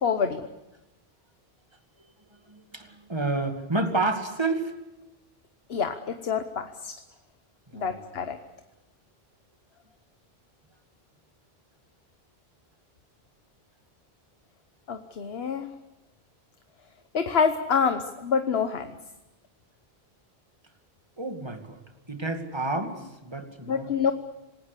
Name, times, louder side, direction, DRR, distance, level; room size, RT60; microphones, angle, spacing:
voice 1, 0.0-0.5 5.7-6.9 7.7-8.4 14.9-15.7 17.1-18.9 23.6-24.1, left 6 dB, 75° left, 8 dB, 1.4 m, -26 dB
voice 2, 2.5-4.7 7.7-8.0 21.2-21.8 22.1-23.9, right 2 dB, 25° right, 6 dB, 2.3 m, -30 dB
28.0 x 19.5 x 8.3 m, 0.98 s
omnidirectional pair, 1.0 m